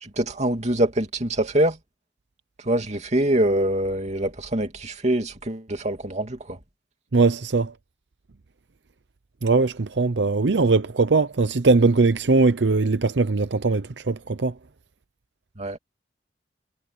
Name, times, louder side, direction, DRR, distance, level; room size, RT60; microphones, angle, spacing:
voice 1, 0.0-1.8 2.7-6.6 15.6-15.8, right 1 dB, 40° right, 2.6 m, -24 dB
voice 2, 7.1-7.7 9.4-14.5, right 3 dB, 85° right, 0.7 m, -20 dB
head